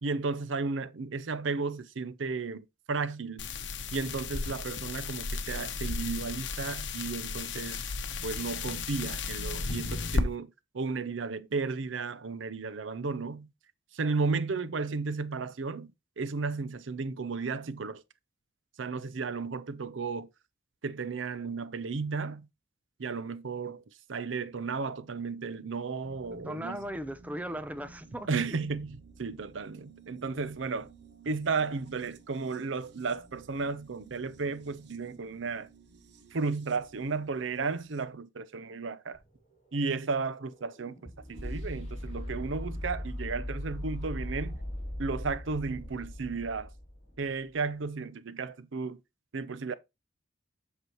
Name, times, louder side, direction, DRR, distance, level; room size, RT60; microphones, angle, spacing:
voice 1, 0.0-3.5 3.9-7.8 8.2-13.5 13.9-18.0 18.8-20.3 20.8-22.5 23.0-23.8 24.1-26.8 28.3-30.9 31.2-35.7 36.3-39.2 39.7-44.6 45.0-46.7 47.2-49.0 49.3-49.7, right 4 dB, 85° right, 0.6 m, -34 dB
sound 1, 3.4-10.2, left 4 dB, 75° left, 1.0 m, -34 dB
sound 2, 26.0-38.0, right 4 dB, 60° right, 1.0 m, -55 dB
voice 2, 26.4-28.3, right 1 dB, 10° right, 0.6 m, -37 dB
sound 3, 39.1-47.3, left 1 dB, 35° left, 2.5 m, -39 dB
8.0 x 6.1 x 3.0 m
head